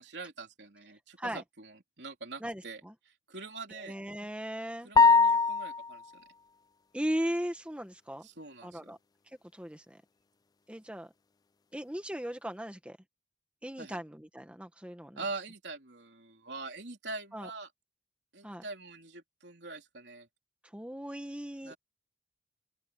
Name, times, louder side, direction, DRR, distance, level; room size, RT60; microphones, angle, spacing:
voice 1, 0.0-2.8 3.1-4.0 4.8-6.2 8.2-8.9 13.8-14.0 15.2-17.7 18.3-20.3 21.6-21.8, right 3 dB, 70° right, 3.7 m, -44 dB
voice 2, 2.4-2.9 3.7-4.9 6.9-8.3 8.6-9.0 9.5-10.0 10.7-11.1 11.7-13.0 13.6-15.2 17.3-17.5 18.4-18.6 20.7-21.7, equal, 5° right, 1.5 m, -37 dB
sound 1, 5.0-6.0, left 4 dB, 20° left, 0.3 m, -21 dB
open air
head